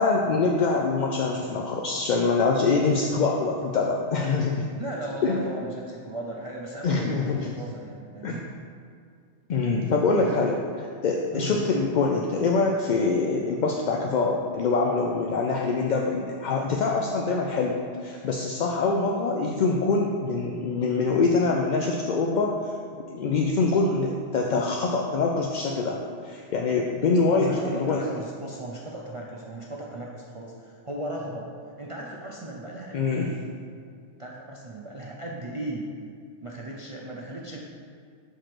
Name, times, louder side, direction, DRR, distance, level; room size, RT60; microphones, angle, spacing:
voice 1, 0.0-4.6 5.2-5.4 6.8-7.5 8.2-8.4 9.5-22.6 23.1-26.0 26.2-28.0 32.9-33.3, left 4 dB, 60° left, 0 dB, 0.5 m, -24 dB
voice 2, 4.8-8.5 10.1-10.4 11.3-11.6 27.0-31.5 31.8-33.4 34.2-35.9 36.4-37.6, right 1 dB, 40° right, -3 dB, 0.5 m, -36 dB
4.9 x 4.5 x 5.9 m, 2.3 s
omnidirectional pair, 1.2 m